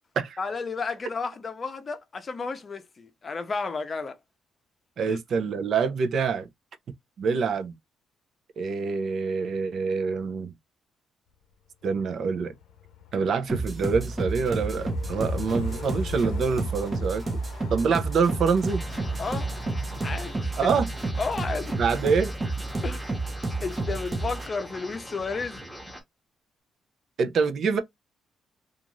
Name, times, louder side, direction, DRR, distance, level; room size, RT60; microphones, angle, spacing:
voice 1, 0.4-4.2 5.1-5.2 19.2-19.5 20.0-20.7 21.2-21.8 22.8-23.3 23.6-25.6, left 4 dB, 35° left, 0.6 m, -32 dB
voice 2, 5.0-6.5 7.2-7.7 8.6-10.5 11.8-12.5 13.1-17.2 17.7-18.8 20.6-20.9 21.8-22.3 27.2-27.8, right 5 dB, 60° right, 0.5 m, -25 dB
Train, 11.9-20.3, left 8 dB, 85° left, 0.6 m, -41 dB
sound 1, 13.5-24.5, right 3 dB, 30° right, 0.7 m, -31 dB
sound 2, 18.7-26.0, equal, 5° right, 1.0 m, -41 dB
2.5 x 2.4 x 2.9 m
cardioid pair, 90°, 0 cm